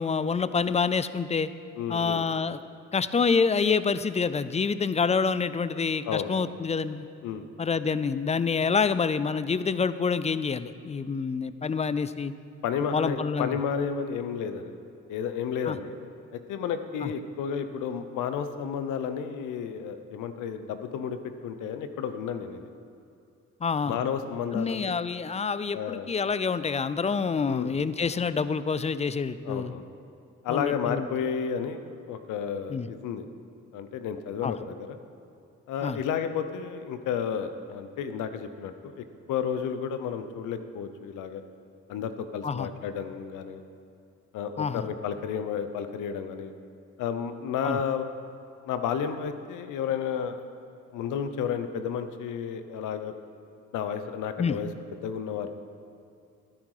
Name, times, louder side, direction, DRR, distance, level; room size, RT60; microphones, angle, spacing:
voice 1, 0.0-1.5 1.9-2.6 2.9-7.1 7.6-12.3 12.9-13.5 15.6-15.8 17.0-17.1 23.6-23.9 24.5-29.7 30.5-31.1 32.7-32.9 34.4-34.5 35.8-36.0 42.4-42.7 44.6-44.9 47.6-47.8 54.4-54.6, left 5 dB, 20° left, 14 dB, 0.4 m, -27 dB
voice 2, 1.8-2.2 6.1-6.3 7.2-7.4 12.6-14.8 15.1-15.9 16.3-22.7 23.9-25.1 25.7-26.1 27.5-27.7 29.4-29.8 30.4-33.2 33.7-35.0 35.7-41.4 41.9-43.6 44.3-46.5 47.0-48.1 48.6-50.4 50.9-53.1 53.7-55.5, left 7 dB, 85° left, 9 dB, 0.9 m, -32 dB
12.5 x 10.5 x 4.9 m, 2.6 s
cardioid pair, 90°, 30 cm